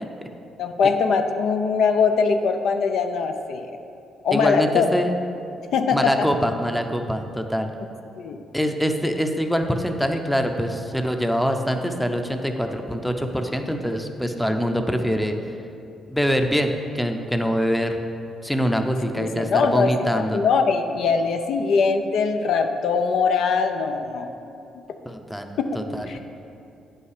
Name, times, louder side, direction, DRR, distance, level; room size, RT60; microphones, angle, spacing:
voice 1, 0.6-3.7 4.2-4.9 5.7-6.3 8.2-8.4 19.2-24.3 25.7-25.8 26.1-26.2, left 5 dB, 70° left, 6 dB, 0.5 m, -22 dB
voice 2, 4.3-5.1 5.9-7.7 8.5-15.4 16.1-18.0 18.4-20.4 25.0-26.2, equal, ahead, 5 dB, 0.6 m, -24 dB
9.1 x 5.6 x 4.9 m, 2.7 s
cardioid pair, 90°, 0 cm